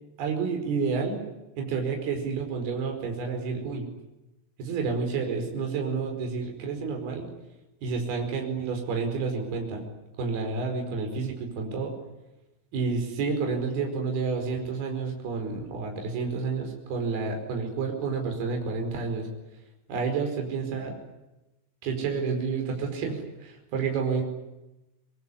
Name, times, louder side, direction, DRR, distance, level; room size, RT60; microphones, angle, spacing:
voice 1, 0.2-1.2 1.6-3.9 4.6-7.3 7.8-9.8 10.2-11.9 12.7-19.3 19.9-21.0 21.8-24.2, right 4 dB, 50° right, 3 dB, 6.6 m, -30 dB
24.5 x 22.0 x 9.9 m, 0.99 s
omnidirectional pair, 5.9 m